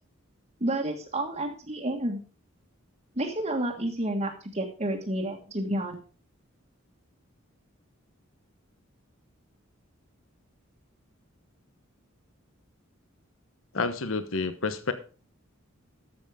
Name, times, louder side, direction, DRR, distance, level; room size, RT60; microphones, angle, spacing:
voice 1, 0.6-2.2 3.2-5.9, right 1 dB, 35° right, -2 dB, 1.6 m, -30 dB
voice 2, 13.7-14.9, left 4 dB, 75° left, 11 dB, 1.0 m, -29 dB
13.0 x 7.7 x 5.0 m, 0.38 s
head